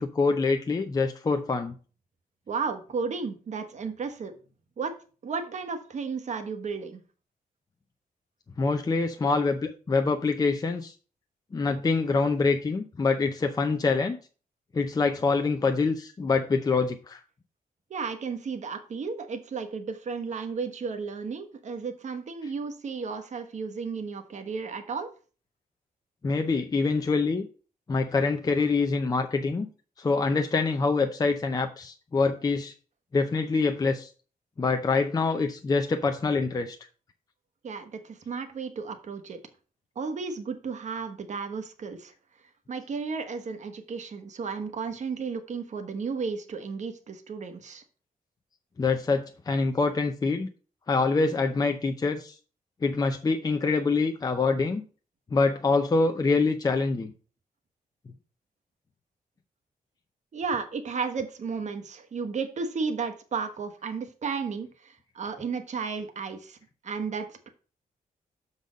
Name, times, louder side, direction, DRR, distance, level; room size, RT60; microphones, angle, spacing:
voice 1, 0.0-1.7 8.6-10.9 11.5-14.2 14.7-17.2 26.2-27.5 27.9-29.7 30.0-32.7 33.1-34.1 34.6-36.8 48.8-50.5 50.9-52.3 52.8-54.8 55.3-57.1, left 4 dB, 25° left, 5 dB, 0.6 m, -25 dB
voice 2, 2.5-4.3 4.8-4.9 5.2-7.0 17.9-25.1 37.6-39.4 39.9-42.1 42.7-47.8 60.3-66.6 66.8-67.5, right 5 dB, 50° right, 7 dB, 1.1 m, -33 dB
6.8 x 4.1 x 6.3 m, 0.37 s
wide cardioid pair, 155°, 15 cm